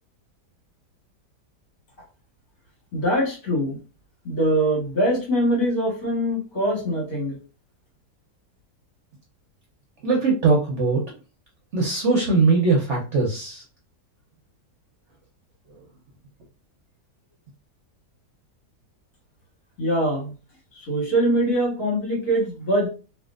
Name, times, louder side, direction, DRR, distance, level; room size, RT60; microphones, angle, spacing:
voice 1, 2.9-3.8 4.2-7.4 19.8-20.3 20.8-22.9, right 1 dB, 65° left, -3 dB, 1.9 m, -23 dB
voice 2, 10.0-11.2 11.7-13.6, right 3 dB, 55° right, -2 dB, 0.8 m, -21 dB
3.5 x 2.4 x 2.4 m, 0.34 s
omnidirectional pair, 1.8 m